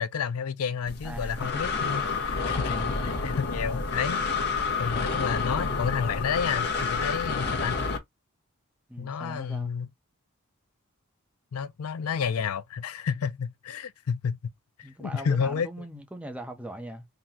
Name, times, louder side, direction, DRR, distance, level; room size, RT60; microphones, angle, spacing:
voice 1, 0.0-4.2 4.8-7.8 9.0-9.9 11.5-14.4 15.0-15.7, left 6 dB, 80° left, 0.4 m, -30 dB
Breathing, 0.9-8.0, left 4 dB, 50° left, 0.9 m, -29 dB
voice 2, 1.0-1.6 2.1-2.2 2.6-3.0 8.9-9.7 14.8-17.1, right 1 dB, 5° right, 0.6 m, -40 dB
3.9 x 2.2 x 4.2 m
head